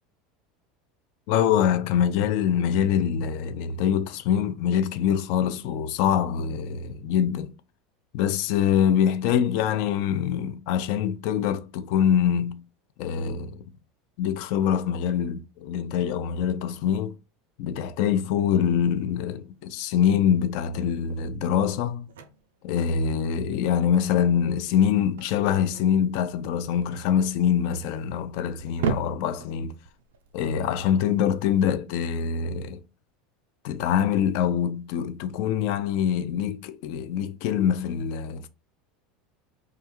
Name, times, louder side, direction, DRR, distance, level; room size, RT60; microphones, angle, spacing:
voice 1, 1.3-7.5 8.1-12.6 13.0-13.6 14.2-17.1 17.6-22.1 22.6-29.7 30.3-32.8 33.6-38.5, left 8 dB, 60° left, 0.3 m, -24 dB
sound 1, 18.3-31.4, right 6 dB, 80° right, 0.3 m, -39 dB
2.4 x 2.2 x 2.9 m
hypercardioid pair, 85°, 0 cm